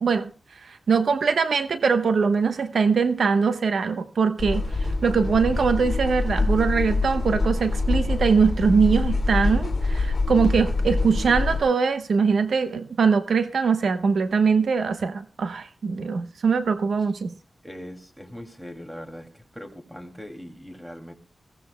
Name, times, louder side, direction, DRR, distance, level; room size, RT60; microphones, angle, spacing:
voice 1, 0.9-17.3, right 5 dB, 85° right, 1.0 m, -22 dB
sound 1, 4.4-11.6, left 3 dB, 50° left, 2.3 m, -25 dB
voice 2, 17.6-19.3 19.5-21.1, equal, 5° right, 2.6 m, -40 dB
21.5 x 16.0 x 2.2 m
wide cardioid pair, 105°, 0 cm